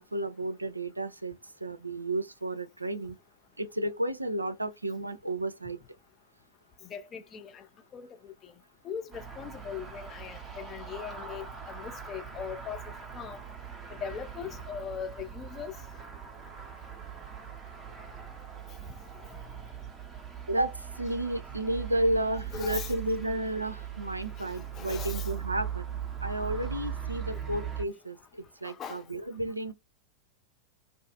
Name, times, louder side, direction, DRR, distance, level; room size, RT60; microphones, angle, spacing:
voice 1, 0.0-3.2 3.6-5.8 20.5-25.9 26.2-29.7, right 1 dB, 85° right, 0.3 m, -32 dB
voice 2, 6.9-7.6 7.9-8.2 8.8-12.8 13.1-13.4 14.0-15.7 22.5-22.9 24.5-25.3 28.6-29.0, left 7 dB, 25° left, 0.4 m, -40 dB
sound 1, 9.1-27.8, right 8 dB, 15° right, 0.7 m, -40 dB
2.4 x 2.4 x 2.3 m
figure-of-eight pair, 90°, 0 cm